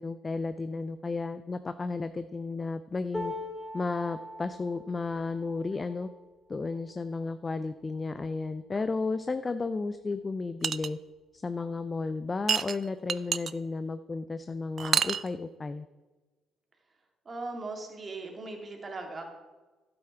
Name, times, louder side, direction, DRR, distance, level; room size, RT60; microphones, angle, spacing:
voice 1, 0.0-3.3 3.7-6.1 6.5-11.0 11.3-15.9, left 3 dB, 30° left, 11 dB, 0.5 m, -33 dB
sound 1, 3.1-9.3 9.9-10.1 10.4-11.1 12.1-12.2, left 1 dB, 15° left, 3.6 m, -43 dB
sound 2, 10.6-10.9 12.5-13.5 14.8-15.3, right 7 dB, 50° right, 0.3 m, -27 dB
voice 2, 17.3-19.2, right 3 dB, 35° right, 2 dB, 2.4 m, -38 dB
11.5 x 7.9 x 4.5 m, 1.2 s
hypercardioid pair, 50°, 0 cm